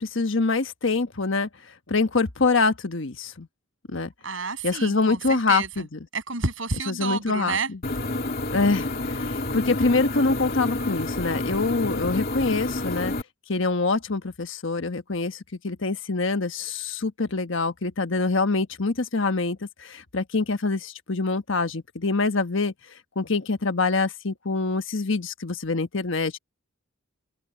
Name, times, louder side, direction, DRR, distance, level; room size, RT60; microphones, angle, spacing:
voice 1, 0.0-3.5 3.9-4.1 4.6-6.0 6.9-7.6 8.5-13.1 13.5-22.7 23.1-26.4, left 3 dB, 70° left, 1.3 m, -25 dB
voice 2, 4.2-5.9 6.1-7.7, right 4 dB, 70° right, 7.3 m, -30 dB
sound 1, 7.8-13.2, left 2 dB, 45° left, 2.7 m, -29 dB
open air
head